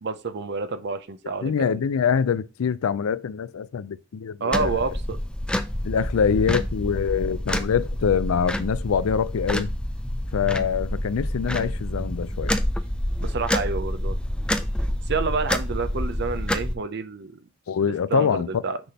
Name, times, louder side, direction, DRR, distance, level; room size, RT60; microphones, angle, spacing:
voice 1, 0.0-1.8 4.4-5.2 13.2-14.2 15.1-17.4 17.8-18.8, right 4 dB, 55° right, 0.6 m, -29 dB
voice 2, 1.4-4.8 5.8-9.7 10.3-12.6 17.7-18.5, left 7 dB, 80° left, 0.4 m, -24 dB
sound 1, 4.5-16.7, left 1 dB, 5° left, 0.4 m, -28 dB
6.0 x 3.4 x 5.6 m
head